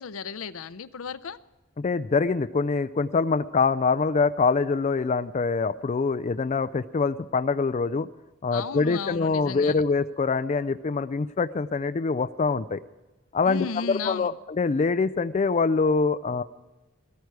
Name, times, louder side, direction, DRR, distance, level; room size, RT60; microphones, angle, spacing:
voice 1, 0.0-1.4 8.5-9.9 13.4-14.4, left 5 dB, 80° left, 14 dB, 0.6 m, -34 dB
voice 2, 1.8-8.1 8.4-12.8 13.3-14.3 14.6-16.4, left 4 dB, 35° left, 11 dB, 0.4 m, -24 dB
16.5 x 14.0 x 4.7 m, 1.1 s
head